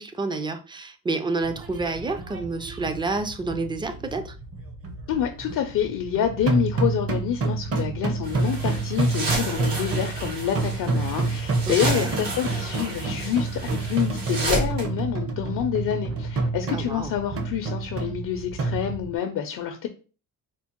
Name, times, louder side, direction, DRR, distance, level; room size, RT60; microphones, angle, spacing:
voice 1, 0.0-4.3 11.7-12.1 16.7-17.1, right 3 dB, 15° right, 0.3 m, -29 dB
sound 1, 1.4-19.1, right 3 dB, 40° right, 0.7 m, -29 dB
voice 2, 5.1-19.9, left 9 dB, 65° left, 0.5 m, -27 dB
sound 2, 7.4-8.0 8.3-10.0 10.4-10.5 11.0-11.4 11.9-12.3, right 2 dB, 60° right, 1.1 m, -48 dB
sound 3, 8.2-14.9, right 2 dB, 75° right, 1.5 m, -32 dB
4.3 x 2.1 x 2.9 m
cardioid pair, 105°, 35 cm